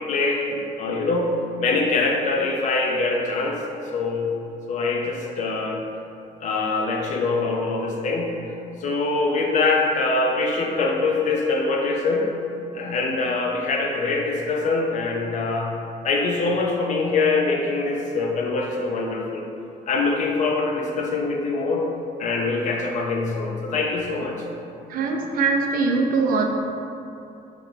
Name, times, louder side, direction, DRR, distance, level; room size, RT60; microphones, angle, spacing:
voice 1, 0.0-3.6 3.9-4.3 4.7-5.8 6.4-8.4 8.8-12.3 12.7-15.8 16.0-19.5 19.9-21.9 22.2-24.4, left 3 dB, 45° left, 1 dB, 0.4 m, -24 dB
voice 2, 24.9-26.4, right 4 dB, 55° right, 2 dB, 0.4 m, -22 dB
3.0 x 2.1 x 3.9 m, 2.7 s
cardioid pair, 110°, 17 cm